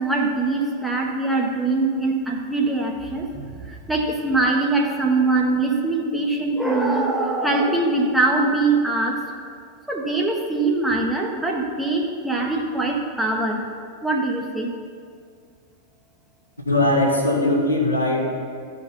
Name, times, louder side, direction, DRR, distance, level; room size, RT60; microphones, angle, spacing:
voice 1, 0.0-9.2 9.9-13.6 14.0-14.7, right 2 dB, 5° right, -1 dB, 1.2 m, -22 dB
voice 2, 16.7-18.3, left 1 dB, 85° left, -4 dB, 1.8 m, -20 dB
15.0 x 5.1 x 4.3 m, 2.1 s
figure-of-eight pair, 90°, 0 cm